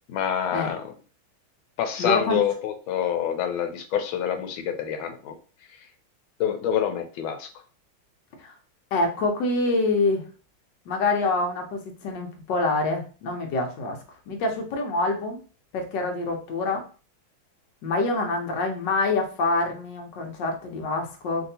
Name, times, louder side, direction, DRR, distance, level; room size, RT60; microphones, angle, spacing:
voice 1, 0.1-0.9 1.8-5.3 6.4-7.5, left 9 dB, 85° left, 7 dB, 1.4 m, -27 dB
voice 2, 2.0-2.4 8.4-8.5 8.9-10.2 10.9-14.0 14.3-15.4 15.7-16.8 17.8-21.5, left 2 dB, 65° left, 3 dB, 1.3 m, -26 dB
3.3 x 2.7 x 2.7 m, 0.37 s
omnidirectional pair, 2.2 m